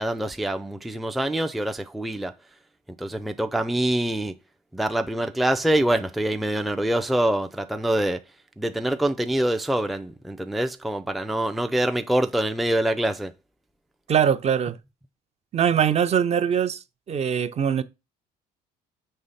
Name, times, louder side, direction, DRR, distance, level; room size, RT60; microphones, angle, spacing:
voice 1, 0.0-2.3 3.0-4.3 4.7-8.2 8.6-13.3, right 1 dB, ahead, 0.4 m, -25 dB
voice 2, 14.1-14.8 15.5-17.8, right 8 dB, 40° right, 0.6 m, -22 dB
6.6 x 3.2 x 5.6 m
cardioid pair, 110°, 17 cm